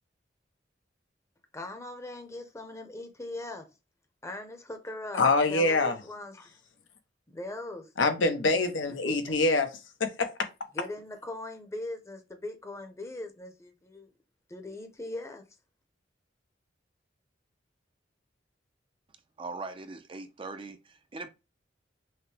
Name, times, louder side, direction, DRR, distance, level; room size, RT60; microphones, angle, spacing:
voice 1, 1.5-3.7 4.2-6.6 7.3-7.9 9.0-9.4 10.7-14.1 14.5-15.4, left 2 dB, 15° left, 0.7 m, -40 dB
voice 2, 5.2-6.0 8.0-9.7 10.0-10.3, left 3 dB, 90° left, 0.8 m, -24 dB
voice 3, 19.4-21.3, right 3 dB, 30° right, 0.5 m, -40 dB
5.6 x 2.1 x 3.3 m
head